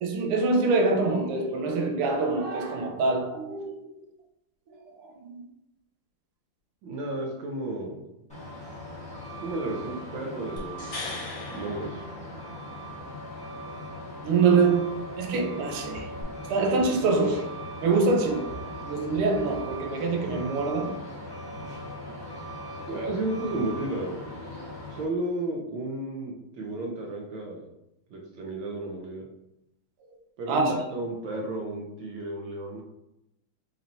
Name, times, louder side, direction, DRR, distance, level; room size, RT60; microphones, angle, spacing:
voice 1, 0.0-3.8 5.0-5.4 14.2-16.2 16.5-21.0 21.5-21.7 30.5-30.7, right 4 dB, 90° right, 1.6 m, -25 dB
voice 2, 6.8-8.0 9.4-12.0 22.9-24.6 24.9-27.7 28.1-29.3 30.4-32.8, right 1 dB, 70° right, 1.3 m, -33 dB
Truck, 8.3-25.0, equal, 5° left, 0.8 m, -39 dB
sound 1, 10.6-12.8 16.2-16.3, left 3 dB, 50° left, 1.2 m, -39 dB
4.1 x 3.1 x 2.6 m
omnidirectional pair, 2.4 m